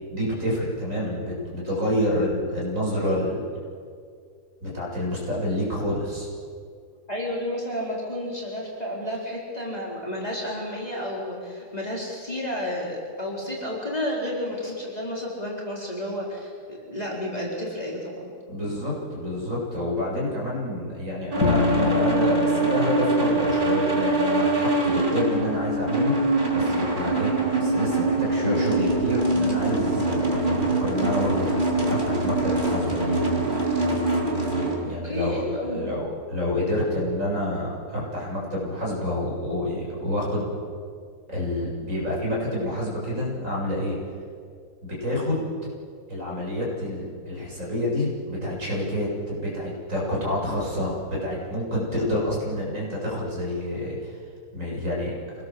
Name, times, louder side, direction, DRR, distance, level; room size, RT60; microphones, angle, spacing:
voice 1, 0.1-3.4 4.6-6.3 18.5-27.3 27.6-33.2 34.8-40.6 41.3-44.0 44.8-45.5 46.1-54.2 54.5-55.1, left 1 dB, 50° right, -5 dB, 8.0 m, -28 dB
voice 2, 7.1-18.3 35.0-36.0, left 1 dB, 25° left, -3 dB, 4.4 m, -31 dB
sound 1, 21.3-34.8, right 2 dB, 30° right, 3.9 m, -23 dB
Bowed string instrument, 21.4-24.5, left 5 dB, 60° left, 2.4 m, -29 dB
26.5 x 19.0 x 7.8 m, 2.2 s
omnidirectional pair, 1.8 m